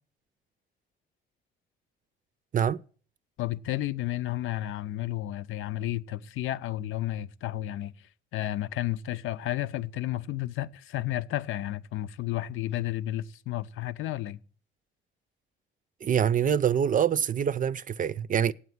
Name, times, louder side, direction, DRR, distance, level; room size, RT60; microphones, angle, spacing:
voice 1, 3.4-7.9 8.3-14.4, left 14 dB, 85° left, 0.7 m, -32 dB
voice 2, 16.0-18.5, right 8 dB, 40° right, 0.5 m, -25 dB
8.7 x 8.2 x 9.4 m
cardioid pair, 90°, 20 cm